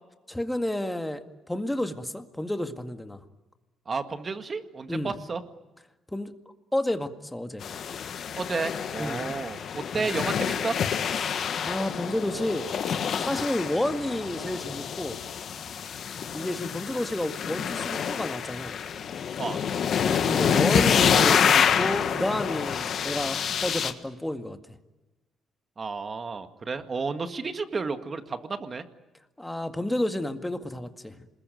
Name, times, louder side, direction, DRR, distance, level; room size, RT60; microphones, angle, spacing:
voice 1, 0.3-3.2 4.9-5.2 6.1-6.3 6.7-7.7 9.0-9.3 9.9-10.1 11.2-11.3 11.6-12.7 13.2-15.2 16.3-18.8 20.0-24.6 29.4-31.2, left 1 dB, 10° left, 6 dB, 2.0 m, -30 dB
voice 2, 3.9-5.4 8.4-10.8 19.4-19.6 25.8-28.8, right 4 dB, 35° right, 8 dB, 1.9 m, -32 dB
sound 1, 7.6-23.9, left 7 dB, 65° left, 1.5 m, -27 dB
27.5 x 21.0 x 9.3 m, 1.1 s
cardioid pair, 90°, 0 cm